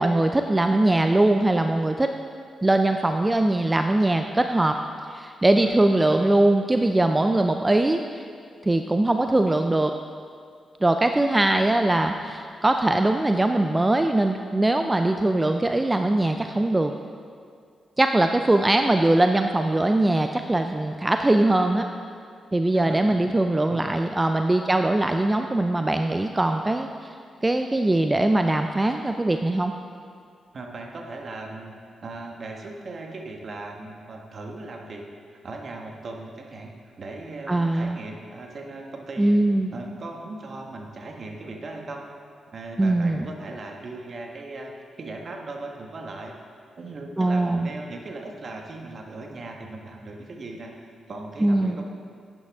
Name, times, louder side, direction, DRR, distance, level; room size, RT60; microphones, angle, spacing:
voice 1, 0.0-2.1 2.6-4.8 5.1-8.2 8.6-9.9 10.8-16.9 18.0-21.9 22.5-27.1 27.4-29.7 37.5-38.0 39.2-39.7 42.8-43.3 47.2-47.7 51.4-51.8, right 2 dB, 20° right, 6 dB, 0.5 m, -21 dB
voice 2, 5.5-5.8 22.7-23.4 23.7-23.9 30.5-31.7 32.0-35.0 35.4-39.4 39.7-42.1 42.5-46.4 46.8-51.9, right 2 dB, 55° right, 2 dB, 1.4 m, -38 dB
11.5 x 9.1 x 3.6 m, 2.2 s
supercardioid pair, 55°, 0 cm